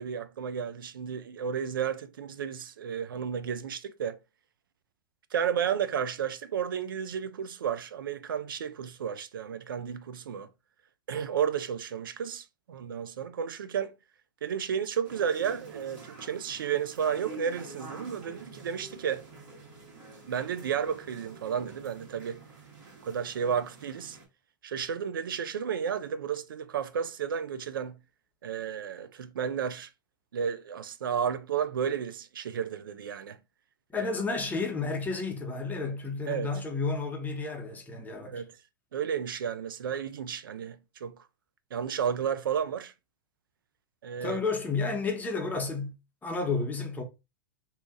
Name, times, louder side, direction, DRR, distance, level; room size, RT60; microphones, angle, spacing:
voice 1, 0.0-4.2 5.3-10.5 11.1-13.9 14.4-19.2 20.3-22.4 23.0-24.2 24.6-28.0 28.4-29.9 30.3-33.4 33.9-34.1 36.3-36.5 38.2-38.5 38.9-41.1 41.7-42.9 44.0-44.4, right 8 dB, 80° right, 0.4 m, -32 dB
sound 1, 15.0-24.3, right 3 dB, 60° right, 1.4 m, -48 dB
voice 2, 33.9-38.4 44.2-45.9 46.2-47.0, left 4 dB, 15° left, 0.9 m, -31 dB
2.8 x 2.4 x 3.6 m
hypercardioid pair, 105°, 11 cm